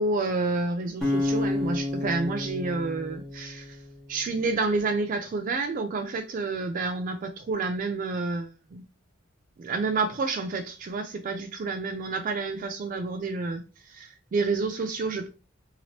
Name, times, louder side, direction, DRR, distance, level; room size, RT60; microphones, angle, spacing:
voice 1, 0.0-3.8 4.1-8.8 9.6-15.3, right 3 dB, 45° right, 0.3 m, -29 dB
sound 1, 1.0-4.2, left 2 dB, ahead, 1.0 m, -30 dB
2.9 x 2.8 x 2.9 m
head